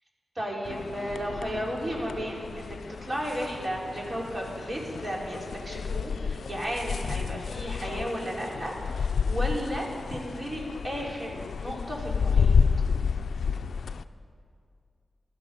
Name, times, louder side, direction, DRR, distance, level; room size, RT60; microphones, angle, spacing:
voice 1, 0.3-8.7 9.2-12.6, equal, 40° right, -2 dB, 3.3 m, -34 dB
sound 1, 0.7-14.0, left 5 dB, 90° left, 0.3 m, -30 dB
15.5 x 12.0 x 5.4 m, 2.3 s
cardioid pair, 60°, 0 cm